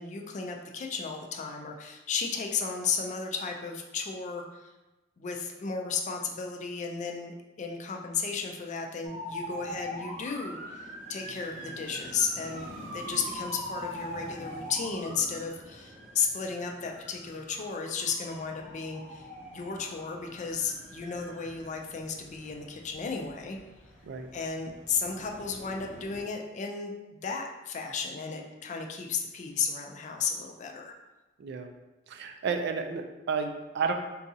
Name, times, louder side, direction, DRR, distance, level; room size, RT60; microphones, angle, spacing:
voice 1, 0.0-4.7 5.2-7.3 7.6-12.7 12.9-23.6 24.3-30.9, left 5 dB, 40° left, 2 dB, 0.3 m, -34 dB
sound 1, 9.0-26.2, equal, 30° right, 0.9 m, -43 dB
voice 2, 31.4-31.7 32.1-33.9, right 5 dB, 60° right, 6 dB, 0.3 m, -32 dB
3.8 x 2.4 x 2.7 m, 1.1 s
head